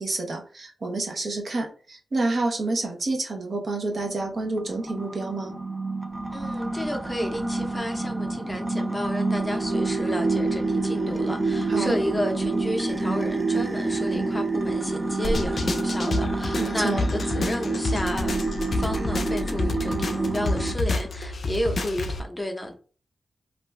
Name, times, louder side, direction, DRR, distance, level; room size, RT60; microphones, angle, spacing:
voice 1, 0.0-5.5 11.7-12.0 16.6-17.0, right 2 dB, 55° right, 0.7 m, -28 dB
sound 1, 4.0-20.7, right 3 dB, 25° right, 0.3 m, -28 dB
voice 2, 6.3-18.3 18.7-22.8, left 1 dB, 15° left, 0.6 m, -31 dB
sound 2, 15.2-22.2, left 2 dB, 60° left, 0.4 m, -29 dB
2.5 x 2.2 x 3.3 m
cardioid pair, 70°, 0 cm